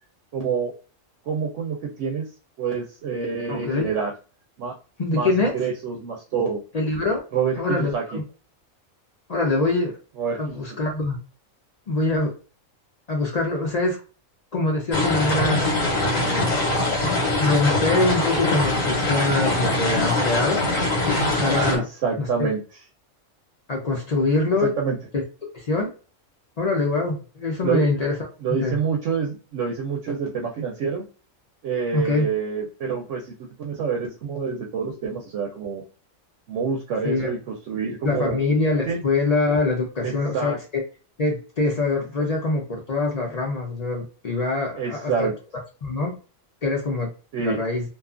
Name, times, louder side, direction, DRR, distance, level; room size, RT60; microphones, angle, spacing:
voice 1, 0.3-0.7 1.3-2.3 2.6-4.1 4.6-4.7 5.1-6.6 7.3-8.2 10.2-10.6 21.7-22.6 24.6-25.0 27.6-27.9 28.4-31.0 31.6-35.8 36.5-38.4 38.9-39.0 40.0-40.6 42.2-42.3 44.8-45.3 47.3-47.6, right 6 dB, 70° right, 0 dB, 0.9 m, -27 dB
voice 2, 3.5-3.9 5.0-5.5 6.7-7.2 7.6-8.2 9.3-9.9 10.3-11.2 11.9-12.3 13.1-14.0 14.5-15.7 16.0-16.5 17.0-20.6 21.0-21.8 22.2-22.5 23.7-24.7 25.5-25.9 26.6-28.2 28.6-28.8 31.9-32.3 37.0-37.3 38.0-40.8 41.2-45.3 45.8-46.1 46.6-47.1 47.4-47.8, left 3 dB, 55° left, 0 dB, 0.4 m, -24 dB
sound 1, 14.9-21.8, left 2 dB, 85° left, 1.4 m, -23 dB
2.6 x 2.3 x 2.4 m, 0.35 s
omnidirectional pair, 1.4 m